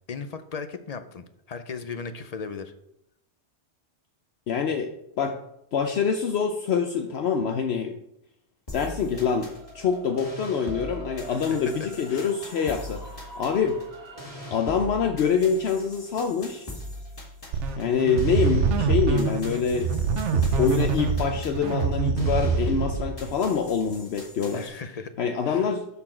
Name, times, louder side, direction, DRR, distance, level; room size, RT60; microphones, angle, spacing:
voice 1, 0.1-2.7 11.3-11.7 12.1-12.3 13.3-13.4 24.5-25.1 25.5-25.7, left 5 dB, 50° left, 9 dB, 0.5 m, -37 dB
voice 2, 4.5-4.9 5.2-5.4 5.7-7.9 8.7-13.0 13.4-13.8 14.5-16.7 17.8-19.9 20.3-24.7 25.2-25.9, left 6 dB, 65° left, 4 dB, 0.9 m, -25 dB
sound 1, 8.7-24.7, left 1 dB, 30° left, 1.9 m, -41 dB
sound 2, 9.0-19.1, right 4 dB, 35° right, 1.5 m, -46 dB
sound 3, 17.5-23.3, right 5 dB, 80° right, 1.0 m, -25 dB
12.5 x 4.2 x 4.4 m, 0.80 s
omnidirectional pair, 1.2 m